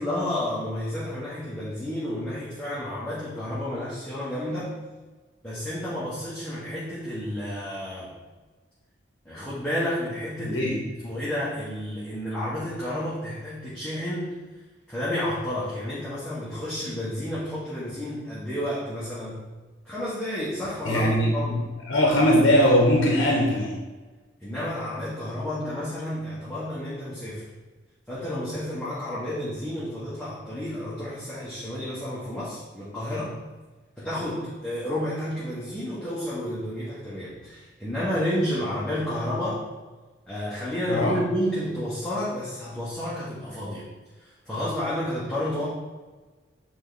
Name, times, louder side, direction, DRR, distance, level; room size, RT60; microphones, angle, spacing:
voice 1, 0.0-4.8 5.4-8.1 9.2-10.7 11.0-14.3 14.9-19.4 19.8-21.6 24.4-27.5 28.1-33.3 34.0-39.7 40.3-43.8 44.2-45.7, left 1 dB, 5° left, -10 dB, 1.2 m, -31 dB
voice 2, 10.4-10.8 20.8-23.8 40.9-41.2, equal, 80° left, 0 dB, 0.9 m, -21 dB
8.6 x 3.5 x 4.1 m, 1.3 s
head